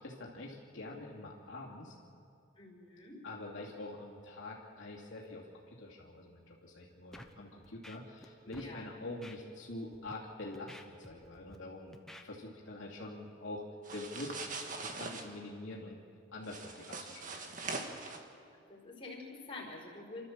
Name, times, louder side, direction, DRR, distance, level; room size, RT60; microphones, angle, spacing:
voice 1, 0.0-1.9 3.2-13.6 13.9-14.4 14.8-16.0 16.3-17.4, left 2 dB, 75° left, -3 dB, 2.8 m, -45 dB
voice 2, 2.6-3.2 8.4-8.9 18.7-20.2, left 2 dB, 30° left, -4 dB, 4.6 m, -47 dB
Scratching (performance technique), 7.1-7.3 7.6-8.3 8.5-8.7 9.2-9.4 9.9-10.1 10.5-11.6 11.9-12.2, left 1 dB, ahead, 1.1 m, -52 dB
sound 1, 13.8-15.2 16.4-18.2, right 3 dB, 45° right, 1.8 m, -42 dB
29.0 x 13.0 x 7.5 m, 2.4 s
head